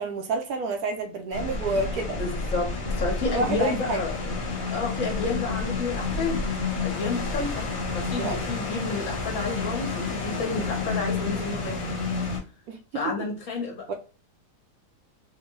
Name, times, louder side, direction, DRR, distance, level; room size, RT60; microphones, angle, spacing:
voice 1, 0.0-2.2 3.3-4.0 7.1-7.2 8.2-8.4 12.7-13.0 13.9-14.0, right 3 dB, 70° right, 5 dB, 1.0 m, -29 dB
sound 1, 1.3-12.4, left 3 dB, 25° left, 0.8 m, -30 dB
voice 2, 2.1-2.7 3.0-4.4 4.7-6.4 6.8-7.5 7.9-11.8 12.9-13.9, left 3 dB, 55° left, 0 dB, 1.2 m, -30 dB
3.6 x 2.2 x 2.9 m, 0.37 s
omnidirectional pair, 1.7 m